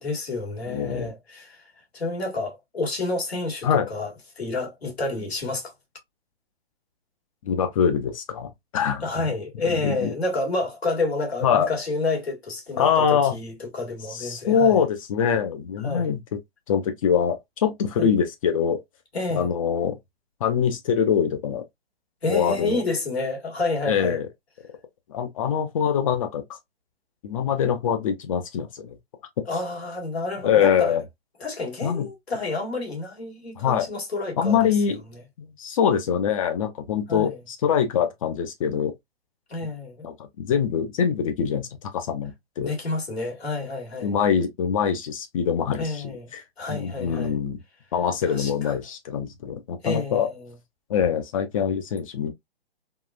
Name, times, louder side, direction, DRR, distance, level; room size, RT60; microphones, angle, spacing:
voice 1, 0.0-5.7 9.0-14.8 15.8-16.1 18.0-18.1 19.1-19.5 22.2-24.2 29.5-31.0 31.4-34.7 35.1-35.2 37.1-37.4 39.5-40.1 42.6-44.2 45.8-46.3 46.6-47.4 48.2-48.8 49.8-50.5, left 3 dB, 85° left, 1.7 m, -29 dB
voice 2, 0.7-1.1 3.6-3.9 7.4-9.0 9.8-10.1 11.4-11.7 12.8-13.3 14.1-16.2 16.7-18.8 19.4-20.0 20.4-21.6 22.3-22.8 23.9-24.3 25.1-26.4 27.2-29.0 29.4-29.5 30.4-31.0 31.8-32.1 33.6-33.9 34.4-35.0 35.4-38.9 40.0-41.7 41.9-42.7 44.0-46.0 46.3-46.4 46.7-47.6 47.9-50.3 50.9-52.3, left 7 dB, 35° left, 0.5 m, -24 dB
3.6 x 2.4 x 2.3 m
hypercardioid pair, 135°, 31 cm